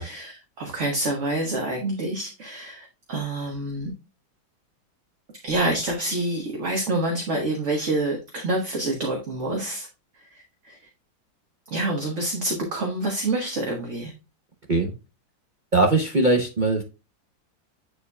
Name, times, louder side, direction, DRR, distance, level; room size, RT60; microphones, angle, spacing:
voice 1, 0.0-3.9 5.4-9.9 10.3-10.8 11.7-14.1, right 2 dB, 40° right, 1.5 m, -27 dB
voice 2, 15.7-16.8, right 2 dB, 60° right, 0.4 m, -20 dB
9.6 x 4.5 x 2.3 m
omnidirectional pair, 2.1 m